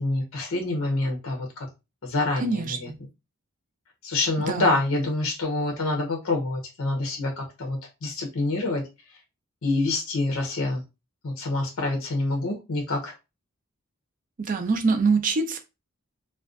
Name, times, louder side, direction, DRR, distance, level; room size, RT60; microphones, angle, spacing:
voice 1, 0.0-1.7 2.0-2.9 4.0-8.8 9.6-10.8 11.2-13.1, left 2 dB, 65° left, 0 dB, 0.6 m, -26 dB
voice 2, 2.4-3.0 4.4-4.7 14.4-15.6, right 4 dB, 35° right, 7 dB, 0.4 m, -25 dB
2.4 x 2.2 x 2.3 m, 0.26 s
head